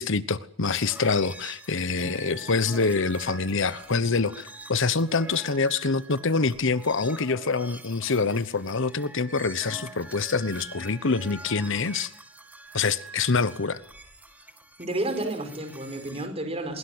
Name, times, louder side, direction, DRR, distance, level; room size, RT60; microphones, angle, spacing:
voice 1, 0.0-12.1 12.7-13.8, left 4 dB, 60° left, 1.0 m, -26 dB
sound 1, 0.6-16.3, right 2 dB, 10° right, 2.3 m, -45 dB
voice 2, 14.8-16.8, right 1 dB, 30° right, 5.0 m, -31 dB
22.5 x 22.5 x 8.0 m
head